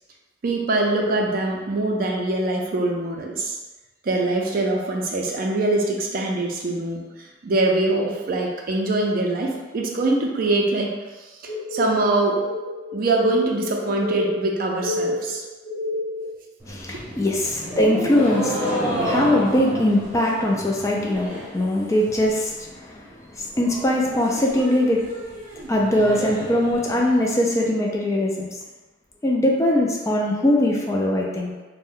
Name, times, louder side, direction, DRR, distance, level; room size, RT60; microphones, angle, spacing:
voice 1, 0.4-3.5 4.0-10.9 11.7-12.4 12.9-15.4 17.1-17.2, right 2 dB, 50° right, -1 dB, 0.4 m, -23 dB
sound 1, 11.5-16.3, left 2 dB, 55° left, 0.7 m, -28 dB
sound 2, 16.6-21.6 21.9-22.4 22.8-22.9 23.1-23.2 23.5-27.5, equal, 15° right, 0.7 m, -30 dB
voice 2, 16.7-18.7 19.0-23.0 23.3-25.0 25.7-28.5 29.2-31.5, left 1 dB, 15° left, -2 dB, 0.3 m, -21 dB
2.6 x 2.1 x 3.6 m, 1.2 s
head